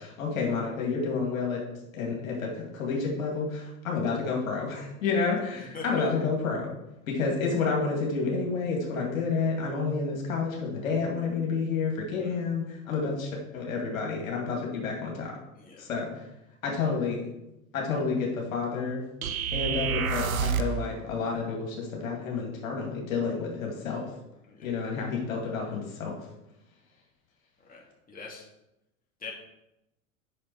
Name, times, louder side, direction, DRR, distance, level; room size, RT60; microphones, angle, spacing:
voice 1, 0.0-1.6 1.9-6.7 7.1-15.4 15.8-16.2 16.6-17.2 17.7-19.0 19.5-24.1 24.6-26.2, left 4 dB, 80° left, -1 dB, 2.4 m, -30 dB
sound 1, 19.2-20.8, right 7 dB, 90° right, 0.8 m, -28 dB
voice 2, 28.1-28.4 29.2-29.3, left 5 dB, 20° left, -2 dB, 2.7 m, -43 dB
7.6 x 6.3 x 4.6 m, 0.89 s
hypercardioid pair, 90°, 40 cm